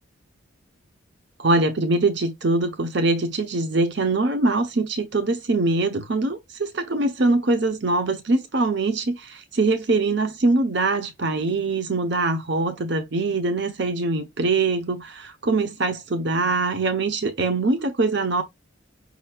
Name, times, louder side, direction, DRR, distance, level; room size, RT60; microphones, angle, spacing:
voice 1, 1.4-18.4, right 3 dB, 55° right, 0.8 m, -23 dB
5.6 x 4.0 x 2.3 m
head